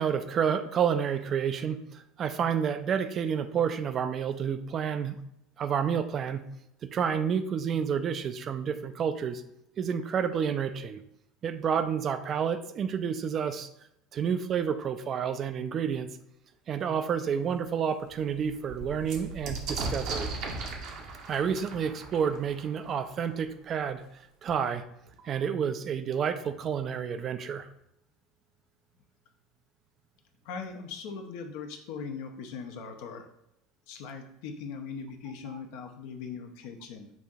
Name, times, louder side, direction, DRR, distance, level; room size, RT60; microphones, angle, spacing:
voice 1, 0.0-5.2 5.6-6.5 6.8-9.4 9.8-11.0 11.4-13.7 14.1-16.1 16.7-20.3 21.3-24.0 24.4-24.8 25.2-27.7, right 7 dB, 40° right, 10 dB, 0.3 m, -29 dB
sound 1, 17.1-17.2 17.6-17.7 18.0-23.5 24.5-24.6 24.8-25.4, right 3 dB, 55° right, 0.7 m, -38 dB
voice 2, 30.4-33.2 33.9-37.1, left 5 dB, 65° left, 5 dB, 0.5 m, -40 dB
5.9 x 2.6 x 2.3 m, 0.80 s
figure-of-eight pair, 70°, 0 cm